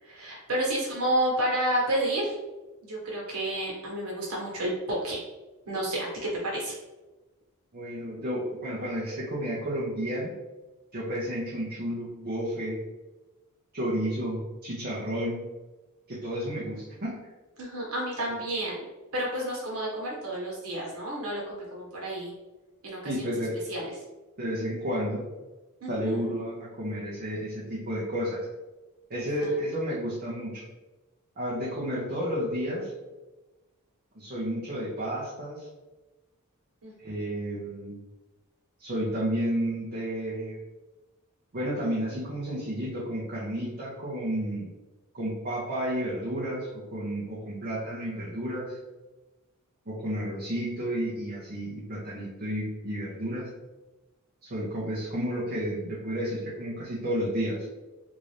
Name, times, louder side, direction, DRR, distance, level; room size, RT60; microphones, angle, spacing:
voice 1, 0.0-2.3 2.8-5.2 5.6-6.7 17.6-18.8 19.1-22.3 22.8-23.3 23.7-23.9 25.8-26.3 29.4-29.6 36.8-37.1, right 1 dB, 65° right, -3 dB, 1.4 m, -30 dB
voice 2, 7.7-10.3 10.9-12.8 13.7-15.4 16.1-17.2 23.0-23.5 24.4-25.2 25.9-28.5 29.1-30.6 31.4-32.9 34.1-35.7 37.0-37.9 38.8-40.6 41.5-44.7 45.1-48.8 49.9-53.5 54.4-57.7, equal, 45° right, -8 dB, 0.8 m, -31 dB
3.7 x 2.6 x 3.3 m, 1.1 s
head